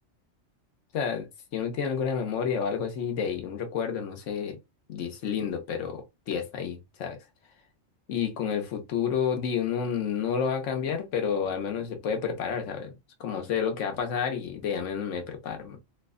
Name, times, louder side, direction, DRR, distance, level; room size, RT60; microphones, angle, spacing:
voice 1, 0.9-4.6 4.9-7.2 8.1-15.8, left 7 dB, 75° left, 1.1 m, -30 dB
3.1 x 2.2 x 3.5 m
omnidirectional pair, 1.3 m